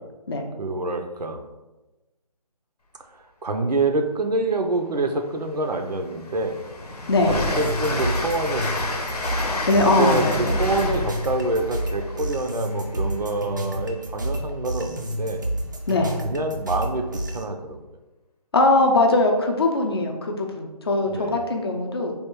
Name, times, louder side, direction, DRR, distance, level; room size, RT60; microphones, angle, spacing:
voice 1, 0.6-1.4 3.1-6.6 7.2-9.1 9.8-15.5 16.2-17.8 21.1-21.4, right 2 dB, 90° right, 5 dB, 0.6 m, -26 dB
Train, 5.1-5.2 5.7-13.4, left 2 dB, 75° left, 0.8 m, -30 dB
voice 2, 7.1-7.4 9.7-10.6 15.9-16.2 18.5-22.1, left 2 dB, 40° left, 3 dB, 0.5 m, -21 dB
sound 1, 7.5-17.4, right 1 dB, 30° right, 0.4 m, -30 dB
3.5 x 2.3 x 4.4 m, 1.1 s
figure-of-eight pair, 160°, 20 cm